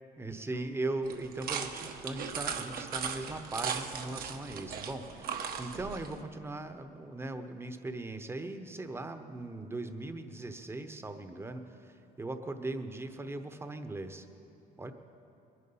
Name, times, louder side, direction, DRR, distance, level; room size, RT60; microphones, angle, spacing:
voice 1, 0.2-14.3 14.8-14.9, right 2 dB, 15° right, 8 dB, 0.9 m, -39 dB
sound 1, 1.1-6.2, right 6 dB, 60° right, 1.1 m, -38 dB
21.5 x 11.0 x 5.5 m, 2.8 s
cardioid pair, 110°, 17 cm